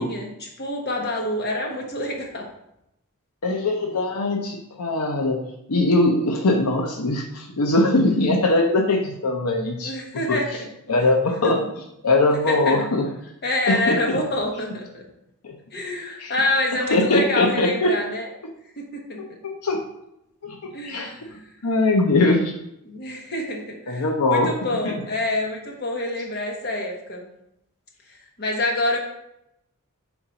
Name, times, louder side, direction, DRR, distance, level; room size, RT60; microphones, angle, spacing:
voice 1, 0.0-2.4 8.2-8.3 9.8-10.5 11.4-11.5 12.5-12.9 13.4-15.0 15.7-18.3 18.8-19.2 20.7-21.4 22.8-24.0 24.3-27.3 28.4-29.0, left 1 dB, 45° left, 1 dB, 1.2 m, -27 dB
voice 2, 3.4-5.4 5.7-10.4 10.9-11.6 12.0-13.1 13.7-14.2 15.4-15.6 16.2-16.3 16.9-17.9 19.6-19.8 20.4-20.6 20.8-21.1 21.6-22.5 23.9-24.5 24.8-24.9, left 2 dB, 85° left, 2 dB, 0.7 m, -21 dB
4.4 x 3.9 x 5.6 m, 0.81 s
head